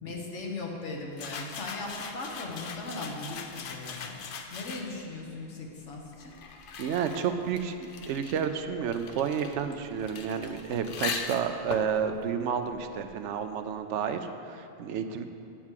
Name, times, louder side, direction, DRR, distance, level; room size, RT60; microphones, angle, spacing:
voice 1, 0.0-4.2 4.5-6.4, left 2 dB, 90° left, 0 dB, 1.5 m, -38 dB
sound 1, 1.1-5.1 5.9-13.3, left 6 dB, 60° left, 0.7 m, -41 dB
voice 2, 6.8-15.3, right 7 dB, 85° right, 8 dB, 0.9 m, -31 dB
8.7 x 4.7 x 7.4 m, 2.6 s
omnidirectional pair, 1.2 m